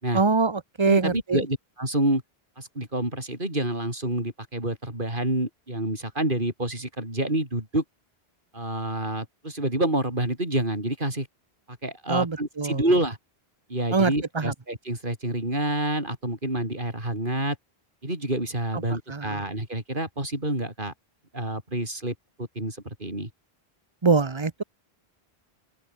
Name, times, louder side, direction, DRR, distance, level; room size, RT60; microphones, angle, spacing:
voice 1, 0.1-1.4 12.1-12.8 13.9-14.5 19.1-19.4 24.0-24.6, right 4 dB, 30° right, 1.1 m, -23 dB
voice 2, 0.8-2.2 2.6-7.8 8.5-11.3 11.7-13.2 13.7-17.6 18.0-20.9 21.3-23.3, right 1 dB, 55° right, 6.4 m, -28 dB
open air
omnidirectional pair, 1.0 m